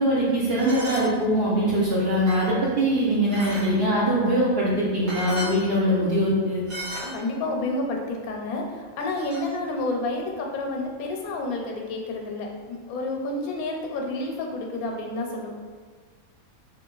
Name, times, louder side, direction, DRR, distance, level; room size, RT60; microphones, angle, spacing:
voice 1, 0.0-6.6, equal, 55° right, -6 dB, 0.7 m, -22 dB
sound 1, 0.5-1.1 1.8-2.6 3.3-3.7 4.7-4.8 5.1-5.6 6.7-7.1 9.0-9.5, right 1 dB, 85° right, 1.5 m, -35 dB
voice 2, 7.0-15.5, left 2 dB, 90° left, 1 dB, 1.0 m, -30 dB
4.2 x 2.6 x 2.3 m, 1.5 s
omnidirectional pair, 1.5 m